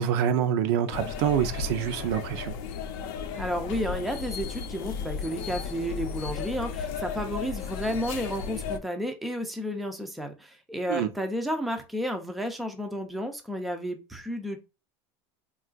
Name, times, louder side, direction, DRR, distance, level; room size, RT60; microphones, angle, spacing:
voice 1, 0.0-2.5 10.9-11.1, right 9 dB, 75° right, 0.5 m, -26 dB
sound 1, 0.9-8.8, left 6 dB, 65° left, 0.5 m, -35 dB
voice 2, 3.4-14.6, equal, ahead, 0.4 m, -32 dB
3.7 x 2.3 x 2.4 m
cardioid pair, 155°, 13 cm